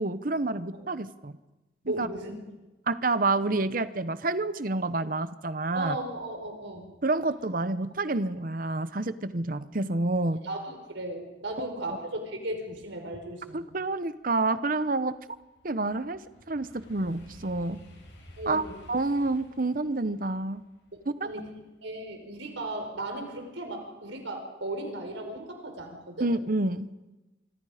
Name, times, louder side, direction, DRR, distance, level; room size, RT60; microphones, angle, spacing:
voice 1, 0.0-1.4 1.9-2.1 2.9-6.0 7.0-10.4 13.5-15.2 15.6-16.2 16.5-17.8 18.5-20.6 26.2-26.9, right 2 dB, 45° right, 13 dB, 0.9 m, -28 dB
voice 2, 1.8-2.4 5.7-6.9 10.4-13.7 18.4-18.8 21.2-21.5 21.8-26.3, right 1 dB, 85° right, 4 dB, 4.8 m, -36 dB
sound 1, 14.1-22.6 23.0-23.4, equal, 70° left, 7.7 m, -54 dB
25.5 x 25.0 x 5.1 m, 1.1 s
head